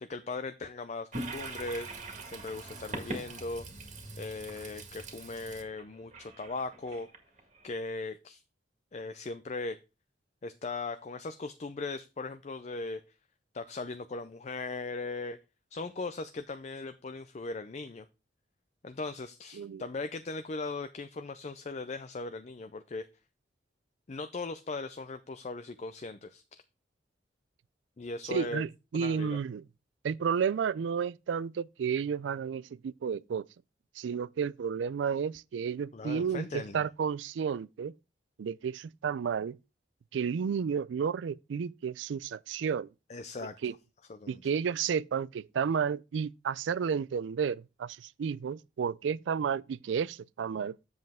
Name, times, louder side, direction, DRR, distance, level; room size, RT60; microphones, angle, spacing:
voice 1, 0.0-1.9 2.2-7.1 7.6-8.4 8.9-9.8 10.4-13.0 13.5-15.4 15.7-18.1 18.8-23.1 24.1-26.6 28.0-28.6 28.9-29.4 35.9-36.9 43.1-43.6 44.1-44.4, left 3 dB, 40° left, 0.4 m, -38 dB
Toilet flush, 1.1-7.7, right 2 dB, 40° right, 1.8 m, -42 dB
voice 2, 19.5-19.9 28.2-29.6 30.0-33.5 34.0-37.9 38.4-39.6 40.1-42.9 43.6-43.7 44.3-50.8, right 7 dB, 85° right, 0.3 m, -32 dB
7.8 x 7.5 x 3.5 m
head